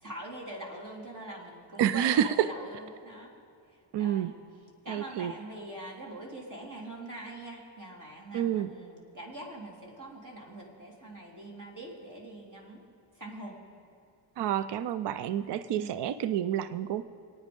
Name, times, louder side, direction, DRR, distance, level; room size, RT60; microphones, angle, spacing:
voice 1, 0.0-3.3 3.7-4.4 4.8-12.8 13.1-13.6 15.7-16.0, right 1 dB, 40° right, -1 dB, 3.7 m, -43 dB
voice 2, 1.8-2.5 3.9-4.3 4.9-5.3 8.3-8.7 14.4-17.0, right 10 dB, 60° right, 14 dB, 0.6 m, -28 dB
24.5 x 9.4 x 5.3 m, 2.4 s
cardioid pair, 95°, 48 cm